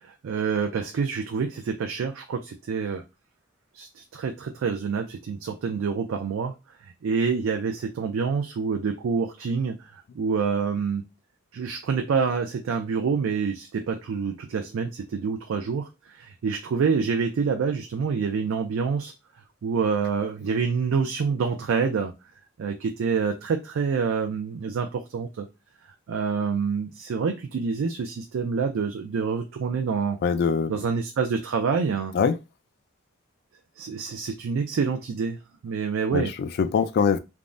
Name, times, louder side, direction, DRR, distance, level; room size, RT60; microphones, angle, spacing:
voice 1, 0.0-3.0 3.7-6.5 6.8-11.0 11.5-19.1 19.6-22.1 22.6-25.5 26.1-30.2 30.7-32.1 33.8-35.4 35.6-36.3, right 5 dB, 70° right, 0.4 m, -27 dB
voice 2, 30.2-30.8 32.1-32.4 36.1-37.2, left 6 dB, 50° left, 0.3 m, -23 dB
3.4 x 2.0 x 2.5 m
head